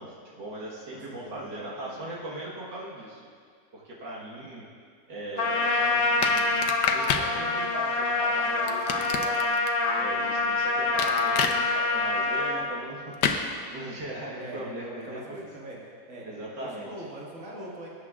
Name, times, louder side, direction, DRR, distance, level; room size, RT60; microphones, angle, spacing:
voice 1, 0.0-3.2 3.7-4.7 5.1-9.4 10.0-15.5 16.2-16.9, right 1 dB, 75° right, -5 dB, 2.1 m, -39 dB
voice 2, 1.2-2.0 4.2-4.5 14.4-14.7 15.0-15.8 16.1-16.3 16.6-17.9, right 1 dB, 45° right, -4 dB, 2.1 m, -42 dB
Trumpet, 5.4-12.7, left 3 dB, 50° left, 0.6 m, -26 dB
sound 1, 6.2-7.3 8.7-9.7 11.0-11.6 13.2-13.4, left 6 dB, 70° left, 1.2 m, -27 dB
19.5 x 9.7 x 2.4 m, 2.1 s
omnidirectional pair, 2.0 m